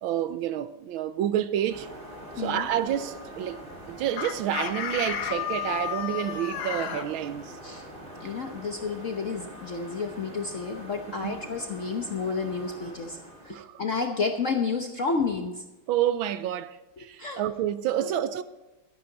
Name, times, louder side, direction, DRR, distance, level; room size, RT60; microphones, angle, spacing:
voice 1, 0.0-1.9 2.4-3.6 3.9-7.6 11.2-11.4 13.5-13.8 15.9-18.4, right 11 dB, 75° right, 1.3 m, -29 dB
sound 1, 1.7-13.5, right 1 dB, 25° right, 2.6 m, -43 dB
voice 2, 2.4-2.7 7.6-7.8 8.2-13.2 13.4-15.6 17.2-17.4 18.0-18.2, left 4 dB, 55° left, 0.9 m, -30 dB
Chicken rooster, 4.2-7.1, left 10 dB, 85° left, 1.9 m, -32 dB
12.5 x 11.5 x 4.0 m
omnidirectional pair, 2.4 m